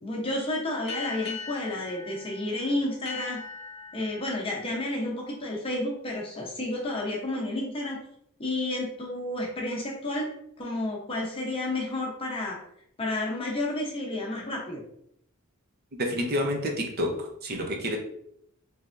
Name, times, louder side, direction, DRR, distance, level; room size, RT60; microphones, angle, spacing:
voice 1, 0.0-3.4 3.9-8.0 8.4-10.3 10.6-12.6 13.0-14.8, left 1 dB, 25° left, -2 dB, 0.8 m, -31 dB
sound 1, 0.9-6.0, left 4 dB, 50° left, 1.0 m, -41 dB
voice 2, 16.0-18.0, equal, 45° right, 2 dB, 0.6 m, -29 dB
3.3 x 3.3 x 2.5 m, 0.70 s
head